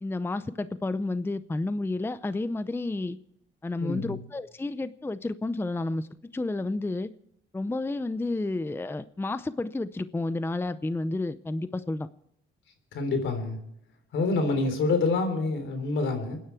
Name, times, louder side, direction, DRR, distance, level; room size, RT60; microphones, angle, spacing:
voice 1, 0.0-3.2 3.6-6.1 6.3-7.1 7.5-12.1, left 2 dB, 10° left, 14 dB, 0.6 m, -31 dB
voice 2, 3.8-4.2 12.9-13.6 14.1-16.4, left 3 dB, 75° left, 7 dB, 3.7 m, -27 dB
29.0 x 10.5 x 4.5 m, 0.75 s
cardioid pair, 90°, 20 cm